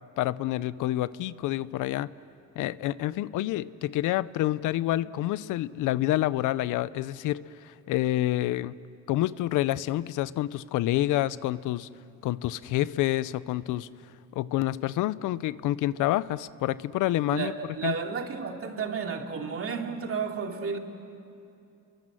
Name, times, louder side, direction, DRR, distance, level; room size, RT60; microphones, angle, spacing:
voice 1, 0.2-2.1 2.6-8.8 9.1-11.9 12.2-13.9 14.3-17.5 17.8-18.0, left 15 dB, 90° left, 0.6 m, -28 dB
voice 2, 17.3-20.8, right 5 dB, 45° right, 2.7 m, -32 dB
29.0 x 23.5 x 7.7 m
cardioid pair, 90°, 30 cm